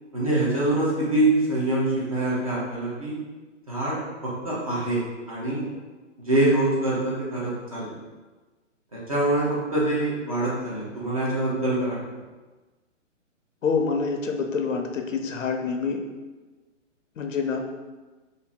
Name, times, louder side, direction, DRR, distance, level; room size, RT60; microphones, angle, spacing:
voice 1, 0.1-3.1 3.7-5.6 6.3-7.9 8.9-12.0, right 2 dB, 30° right, -7 dB, 0.7 m, -25 dB
voice 2, 13.6-16.0 17.2-17.6, left 5 dB, 85° left, 4 dB, 0.7 m, -26 dB
2.7 x 2.5 x 3.7 m, 1.2 s
hypercardioid pair, 180°, 38 cm